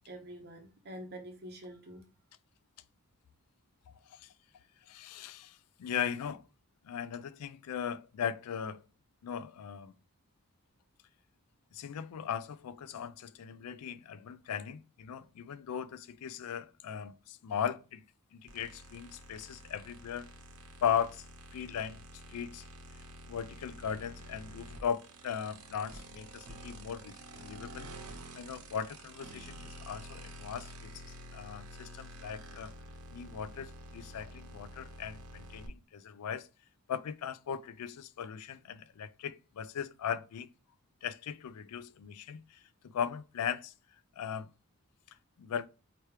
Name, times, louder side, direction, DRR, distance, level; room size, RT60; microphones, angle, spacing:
voice 1, 0.1-2.0, right 1 dB, 50° right, 0.9 m, -46 dB
voice 2, 4.9-6.4 6.8-8.8 9.2-9.9 11.7-18.0 18.3-20.3 20.8-21.2 21.5-22.0 22.3-22.6 23.3-27.9 28.4-32.7 33.1-36.5 36.9-40.5 41.0-42.6 42.8-43.7 44.2-44.5 45.4-45.7, left 8 dB, 90° left, 0.4 m, -38 dB
sound 1, 18.5-35.7, equal, 85° right, 0.9 m, -49 dB
4.6 x 2.9 x 3.2 m
head